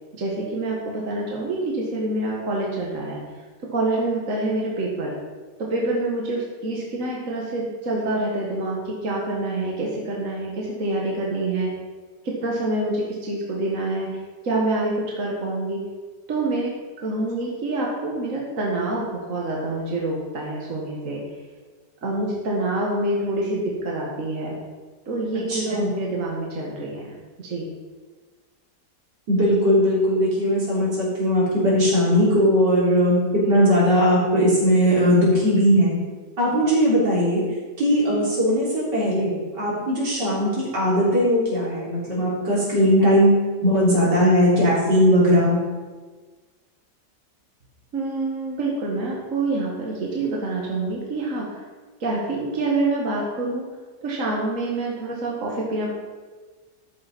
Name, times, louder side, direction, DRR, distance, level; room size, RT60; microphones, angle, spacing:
voice 1, 0.2-3.2 3.7-5.1 5.7-11.7 12.2-14.1 14.4-15.8 16.3-16.7 17.0-21.2 22.0-24.6 25.1-27.6 47.9-51.6 52.0-53.6 54.0-55.9, right 2 dB, 50° right, -3 dB, 2.0 m, -26 dB
voice 2, 25.5-25.9 29.3-36.0 36.4-37.4 37.8-45.6, equal, 80° right, -7 dB, 4.4 m, -19 dB
12.5 x 6.9 x 5.3 m, 1.4 s
omnidirectional pair, 1.8 m